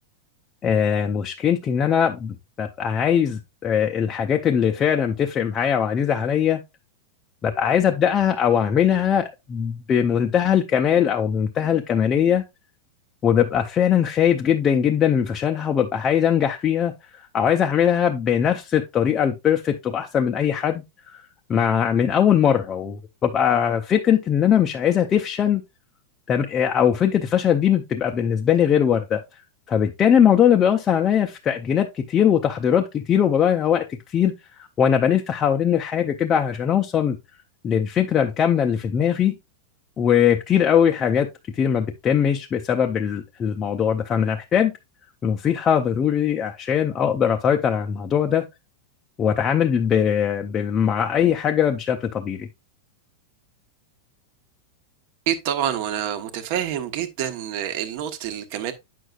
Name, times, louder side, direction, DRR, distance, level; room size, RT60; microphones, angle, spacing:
voice 1, 0.6-6.6 7.4-12.4 13.2-21.2 21.5-25.6 26.3-29.2 29.7-34.3 34.8-37.2 37.6-39.4 40.0-41.3 41.5-44.7 45.2-48.4 49.2-52.5, left 8 dB, 20° left, 0.5 m, -21 dB
voice 2, 55.3-58.7, right 10 dB, 45° right, 1.1 m, -27 dB
9.2 x 6.3 x 2.4 m
supercardioid pair, 170°, 0 cm